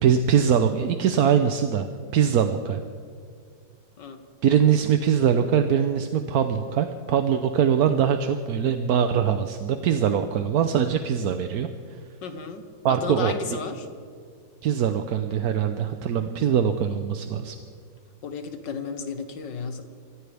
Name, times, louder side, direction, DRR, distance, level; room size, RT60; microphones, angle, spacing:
voice 1, 0.0-1.9 2.1-2.8 4.4-11.7 12.8-13.6 14.6-17.6, right 8 dB, 65° right, 7 dB, 1.1 m, -22 dB
voice 2, 12.2-12.6 12.9-13.9 18.2-19.8, left 5 dB, 70° left, 7 dB, 1.9 m, -33 dB
26.5 x 14.5 x 3.5 m, 2.2 s
omnidirectional pair, 2.0 m